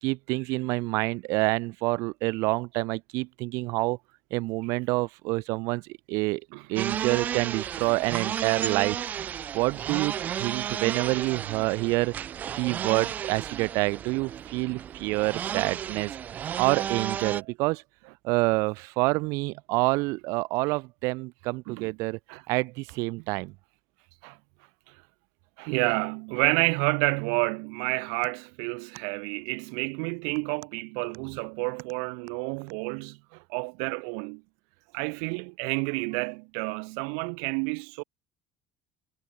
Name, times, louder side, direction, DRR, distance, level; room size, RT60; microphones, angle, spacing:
voice 1, 0.0-4.0 4.3-5.8 6.1-6.4 6.7-9.0 9.5-12.1 12.6-16.2 16.6-17.8 18.2-22.2 22.5-23.5, right 24 dB, 65° right, 6.6 m, -27 dB
sound 1, 6.8-17.4, right 9 dB, 30° right, 2.5 m, -33 dB
voice 2, 25.6-34.4 34.9-38.0, right 40 dB or more, 85° right, 2.9 m, -30 dB
cardioid pair, 175°, 6 cm